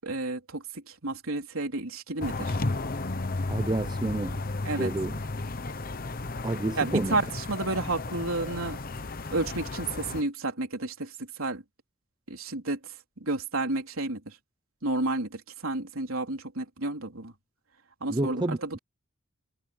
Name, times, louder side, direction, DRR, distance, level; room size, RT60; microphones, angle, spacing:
voice 1, 0.0-0.6 1.0-2.5 4.6-4.9 6.8-7.2 7.5-8.8 9.3-11.1 11.4-11.6 12.3-12.8 13.2-14.2 14.8-17.3 18.0-18.8, right 2 dB, 75° right, 3.7 m, -31 dB
sound 1, 2.2-10.2, left 2 dB, 45° left, 1.0 m, -33 dB
voice 2, 3.5-4.4 4.8-5.2 6.4-7.2 18.1-18.8, right 2 dB, 20° right, 0.6 m, -29 dB
head